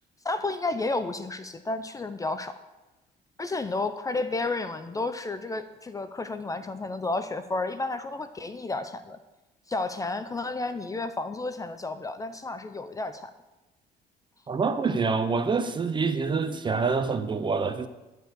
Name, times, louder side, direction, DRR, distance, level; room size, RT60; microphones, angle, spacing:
voice 1, 0.2-2.5 3.4-9.2 9.7-13.3, left 3 dB, 20° left, 0.5 m, -31 dB
voice 2, 14.5-17.9, right 4 dB, 30° right, 0.8 m, -26 dB
11.5 x 4.6 x 7.9 m
cardioid pair, 110°, 17 cm